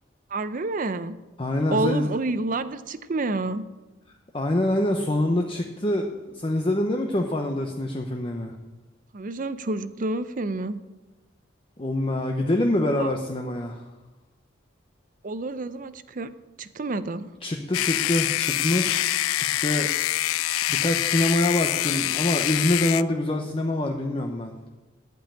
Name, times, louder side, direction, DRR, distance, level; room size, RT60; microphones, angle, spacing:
voice 1, 0.3-1.2 1.7-3.6 9.1-10.8 12.9-13.1 15.2-16.3 16.6-17.3, right 2 dB, 40° right, 13 dB, 0.5 m, -29 dB
voice 2, 1.4-2.1 4.3-8.5 11.8-13.8 17.4-19.0 19.4-19.9 20.4-24.5, left 1 dB, 25° left, 3 dB, 0.7 m, -25 dB
sound 1, 17.7-23.0, left 14 dB, 90° left, 0.3 m, -25 dB
11.5 x 5.4 x 8.7 m, 1.1 s
head